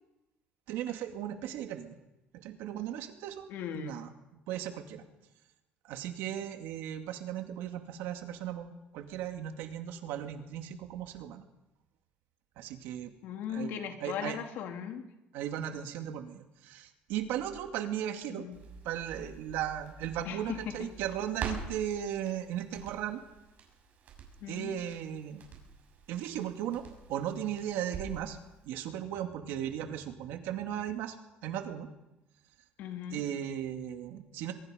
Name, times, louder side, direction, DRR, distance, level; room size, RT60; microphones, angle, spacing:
voice 1, 0.7-2.0 2.3-3.5 3.7-5.0 5.8-11.4 12.6-13.1 13.5-13.7 14.0-14.4 15.3-18.5 18.8-23.2 24.5-25.4 26.1-28.4 28.6-31.2 31.4-31.9 33.1-34.5, right 10 dB, 80° right, 5 dB, 2.5 m, -36 dB
voice 2, 3.5-4.0 13.2-15.0 18.3-18.6 20.2-20.9 24.4-24.7 32.8-33.2, left 8 dB, 70° left, 4 dB, 3.0 m, -38 dB
Crackle, 18.5-28.3 28.6-28.7, right 5 dB, 50° right, 6.9 m, -46 dB
24.0 x 22.5 x 5.3 m, 0.94 s
cardioid pair, 140°, 4 cm